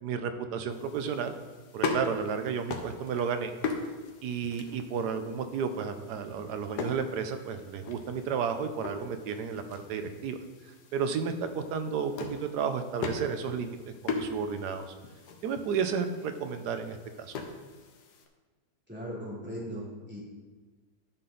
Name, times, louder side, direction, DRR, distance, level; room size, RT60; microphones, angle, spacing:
voice 1, 0.0-1.4 1.7-3.5 4.2-10.4 10.9-13.8 14.0-14.9 15.4-17.3, right 6 dB, 75° right, 8 dB, 1.2 m, -32 dB
sound 1, 0.7-18.3, left 4 dB, 70° left, 1.4 m, -40 dB
voice 2, 18.9-20.2, equal, 5° right, -9 dB, 3.0 m, -38 dB
11.0 x 5.8 x 3.9 m, 1.3 s
omnidirectional pair, 1.8 m